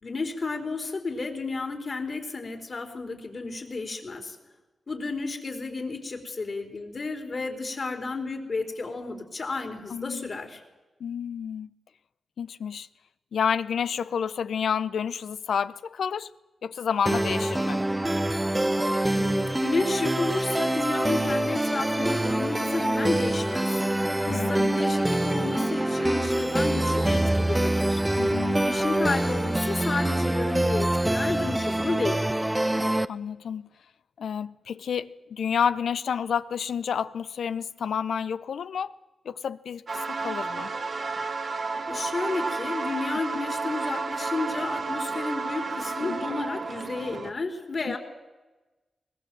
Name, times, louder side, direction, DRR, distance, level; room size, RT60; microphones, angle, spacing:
voice 1, 0.0-4.3 4.9-10.6 19.1-23.8 24.3-28.0 28.5-32.2 41.9-48.0, left 3 dB, 55° left, 4.2 m, -32 dB
voice 2, 9.9-10.3 11.0-11.7 12.4-12.9 13.3-16.3 16.6-17.8 24.3-24.8 28.2-28.6 33.1-33.7 34.2-38.9 39.2-40.7 46.0-46.2 47.9-48.0, left 7 dB, 80° left, 0.7 m, -30 dB
sound 1, 17.1-33.1, right 1 dB, 15° right, 0.9 m, -25 dB
sound 2, 39.9-47.3, right 4 dB, 60° right, 1.8 m, -32 dB
22.0 x 19.0 x 7.8 m
supercardioid pair, 45°, 0 cm